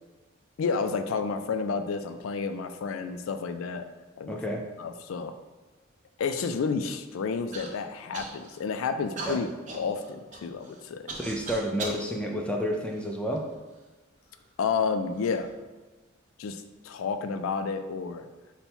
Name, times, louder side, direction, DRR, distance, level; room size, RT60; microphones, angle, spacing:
voice 1, 0.6-3.8 4.2-4.4 4.8-5.3 6.2-9.5 9.7-11.1 14.6-15.5 16.4-18.3, left 5 dB, 85° left, 9 dB, 0.3 m, -30 dB
voice 2, 4.3-4.6 9.3-9.4 11.2-13.5, equal, 5° left, 1 dB, 0.4 m, -30 dB
Human voice / Cough, 7.5-7.7 8.1-8.6 9.2-12.0 12.7-13.6 14.3-14.4 15.1-15.5, right 2 dB, 35° right, 0.6 m, -39 dB
5.4 x 2.2 x 4.4 m, 1.2 s
head